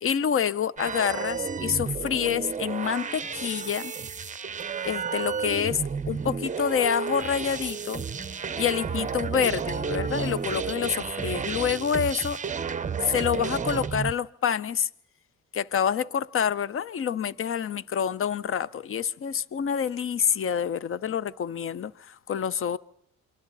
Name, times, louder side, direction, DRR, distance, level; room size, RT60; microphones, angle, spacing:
voice 1, 0.0-3.9 4.8-5.8 6.1-8.0 8.6-12.4 13.0-14.9 15.5-22.8, left 8 dB, 45° left, 0.7 m, -27 dB
sound 1, 0.8-14.1, right 6 dB, 25° right, 0.7 m, -32 dB
27.5 x 24.0 x 4.0 m
cardioid pair, 90°, 30 cm